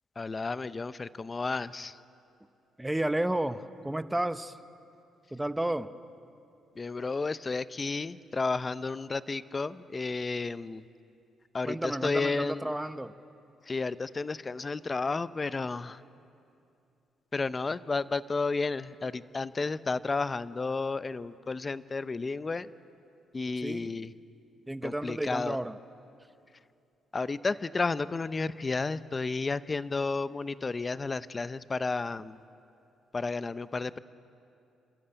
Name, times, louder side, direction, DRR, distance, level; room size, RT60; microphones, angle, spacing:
voice 1, 0.2-2.0 6.8-10.8 11.5-12.7 13.6-16.0 17.3-22.7 23.3-24.1 24.8-25.6 27.1-32.4 33.1-34.0, left 3 dB, 30° left, 15 dB, 0.6 m, -32 dB
voice 2, 2.8-4.6 5.3-5.9 11.6-13.1 23.6-23.9 24.7-25.8, right 1 dB, 10° right, 12 dB, 0.8 m, -32 dB
27.5 x 13.5 x 8.8 m, 2.6 s
cardioid pair, 90°, 0 cm